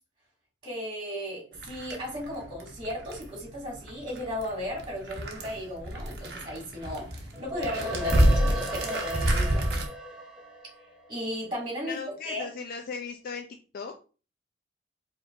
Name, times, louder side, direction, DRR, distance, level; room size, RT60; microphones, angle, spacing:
voice 1, 0.6-9.8 11.1-12.0 12.2-12.5, equal, 25° right, -3 dB, 2.0 m, -35 dB
sound 1, 1.5-9.9, right 1 dB, 55° right, 0.9 m, -29 dB
sound 2, 7.3-11.9, equal, 5° right, 0.7 m, -37 dB
voice 2, 11.8-13.5 13.7-14.0, left 5 dB, 50° left, 4 dB, 0.4 m, -37 dB
4.9 x 3.0 x 2.5 m, 0.36 s
head